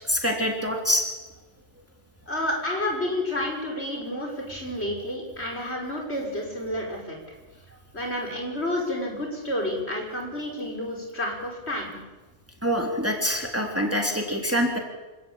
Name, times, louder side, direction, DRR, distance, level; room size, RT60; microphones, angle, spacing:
voice 1, 0.1-1.0 12.6-14.8, equal, 10° right, 2 dB, 3.4 m, -25 dB
voice 2, 2.3-7.2 7.9-11.9, left 1 dB, 60° left, 0 dB, 6.2 m, -30 dB
27.0 x 17.0 x 8.9 m, 1.2 s
omnidirectional pair, 1.2 m